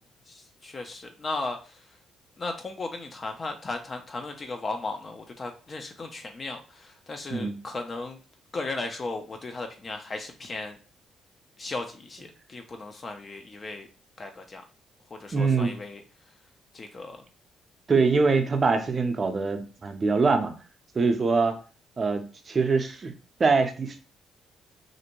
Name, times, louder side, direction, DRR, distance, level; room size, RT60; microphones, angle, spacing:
voice 1, 0.3-1.8 2.4-8.2 8.5-10.8 11.6-13.9 14.2-14.6 15.1-16.0 16.7-17.2, left 3 dB, 35° left, 5 dB, 0.4 m, -36 dB
voice 2, 15.3-15.8 17.9-20.5 20.9-21.6 22.0-23.1 23.4-24.0, right 4 dB, 35° right, 6 dB, 0.5 m, -23 dB
2.5 x 2.1 x 2.9 m, 0.36 s
cardioid pair, 90°, 0 cm